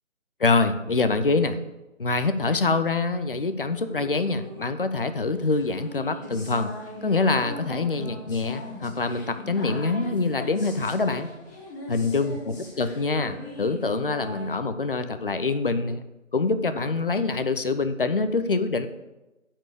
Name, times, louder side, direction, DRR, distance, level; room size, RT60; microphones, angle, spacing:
voice 1, 0.4-1.6 2.0-6.7 7.0-11.3 11.9-16.0 16.3-18.9, left 3 dB, 45° left, 10 dB, 0.6 m, -25 dB
sound 1, 3.8-14.5, left 1 dB, 15° left, 1.3 m, -41 dB
8.9 x 4.6 x 6.6 m, 1.1 s
figure-of-eight pair, 160°, 39 cm